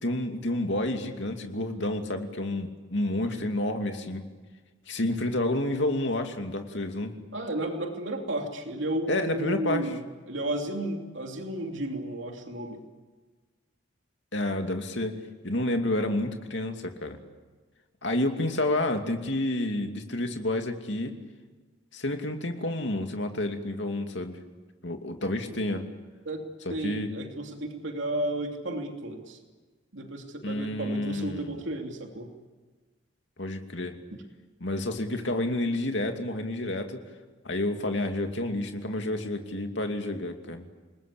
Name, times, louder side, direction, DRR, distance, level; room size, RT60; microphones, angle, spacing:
voice 1, 0.0-4.2 4.9-7.1 9.1-9.9 14.3-15.2 15.4-17.2 18.0-21.2 21.9-24.4 24.8-25.8 26.8-27.1 30.4-31.6 33.4-34.0 34.6-37.0 37.4-40.7, left 1 dB, 65° left, 5 dB, 2.6 m, -29 dB
voice 2, 7.3-12.8 26.2-26.4 26.7-29.4 29.9-32.3 34.1-34.2, right 1 dB, 70° right, 3 dB, 2.9 m, -33 dB
29.0 x 20.0 x 8.6 m, 1.4 s
head